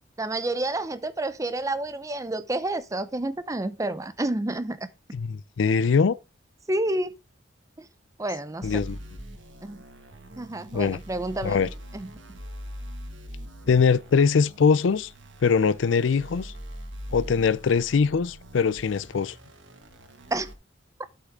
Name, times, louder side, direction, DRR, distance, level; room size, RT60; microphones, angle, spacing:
voice 1, 0.2-4.8 6.7-7.1 7.8-7.9 8.2-8.8 9.6-9.8 10.4-12.4 20.3-20.5, right 2 dB, 15° right, 0.6 m, -30 dB
voice 2, 5.1-6.2 8.6-9.0 10.7-11.0 11.4-11.7 13.7-15.1 15.4-16.5 17.1-19.3, left 5 dB, 85° left, 0.4 m, -22 dB
sound 1, 8.6-20.5, equal, 85° right, 1.7 m, -42 dB
11.5 x 5.8 x 3.6 m
head